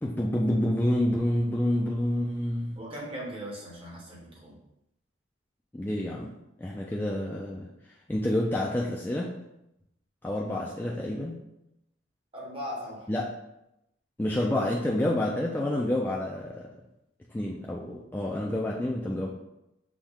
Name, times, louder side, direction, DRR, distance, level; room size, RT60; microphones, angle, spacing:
voice 1, 0.0-2.8 5.7-6.3 6.6-7.7 8.1-9.3 10.2-11.4 13.1-13.3 14.2-16.7 17.3-19.3, left 1 dB, 10° left, -3 dB, 0.3 m, -28 dB
voice 2, 2.8-4.6 12.3-13.1, equal, 30° right, -4 dB, 1.1 m, -39 dB
6.1 x 2.1 x 3.6 m, 0.87 s
head